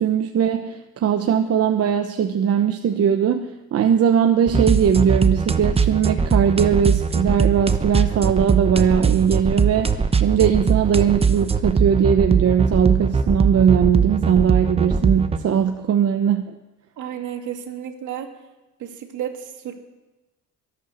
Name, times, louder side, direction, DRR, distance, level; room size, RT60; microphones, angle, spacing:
voice 1, 0.0-9.9 10.2-16.5, right 8 dB, 45° right, 5 dB, 1.0 m, -19 dB
sound 1, 4.5-15.4, right 5 dB, 20° right, 0.9 m, -20 dB
voice 2, 17.0-18.3 18.8-19.7, right 10 dB, 65° right, 4 dB, 2.4 m, -32 dB
22.5 x 8.7 x 6.6 m, 1.1 s
cardioid pair, 110°, 33 cm